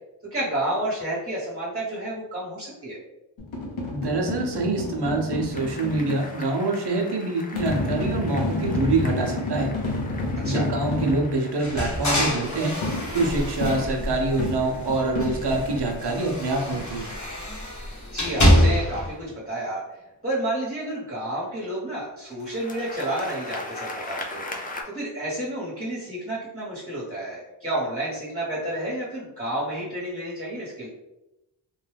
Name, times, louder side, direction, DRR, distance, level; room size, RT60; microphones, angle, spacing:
voice 1, 0.3-3.0 10.4-10.7 17.8-19.8 20.2-24.5 24.8-30.9, right 1 dB, 20° right, -8 dB, 1.2 m, -30 dB
sound 1, 3.4-6.3 7.5-11.3 12.8-15.8, left 2 dB, 85° left, 0.8 m, -29 dB
voice 2, 3.9-9.7 10.4-12.7 13.1-17.1, right 2 dB, 60° right, 2 dB, 0.7 m, -25 dB
sound 2, 5.5-19.6 22.2-24.8, left 2 dB, 20° left, 0.5 m, -42 dB
sound 3, 11.6-14.8 15.1-19.1, equal, 40° left, 0.9 m, -25 dB
2.7 x 2.2 x 3.3 m, 0.94 s
cardioid pair, 60°, 46 cm